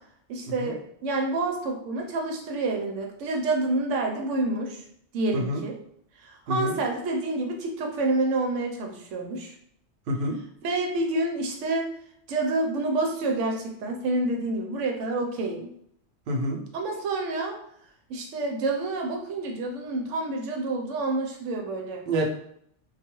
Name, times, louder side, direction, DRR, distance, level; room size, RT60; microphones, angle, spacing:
voice 1, 0.3-4.8 5.1-5.8 6.2-9.5 10.6-11.9 12.3-15.7 16.7-17.6 18.1-22.0, right 2 dB, 90° right, 2 dB, 0.9 m, -28 dB
voice 2, 10.1-10.4 16.3-16.6 22.0-22.3, equal, 60° right, 0 dB, 0.7 m, -27 dB
2.3 x 2.3 x 2.9 m, 0.68 s
omnidirectional pair, 1.2 m